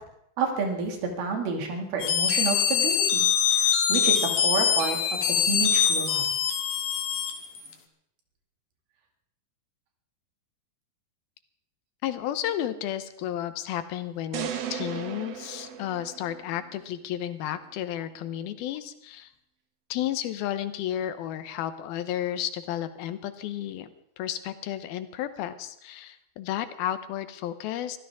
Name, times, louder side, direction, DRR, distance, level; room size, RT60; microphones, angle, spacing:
voice 1, 0.4-3.3 3.5-5.0 5.5-6.3, right 4 dB, 90° right, 3 dB, 4.3 m, -30 dB
sound 1, 2.0-7.7, left 8 dB, 70° left, 3.1 m, -24 dB
voice 2, 12.0-19.3 19.9-23.9 24.2-28.0, left 11 dB, 90° left, 11 dB, 2.9 m, -32 dB
sound 2, 14.3-16.6, right 8 dB, 65° right, 1.6 m, -35 dB
23.5 x 15.0 x 3.6 m, 0.75 s
omnidirectional pair, 4.2 m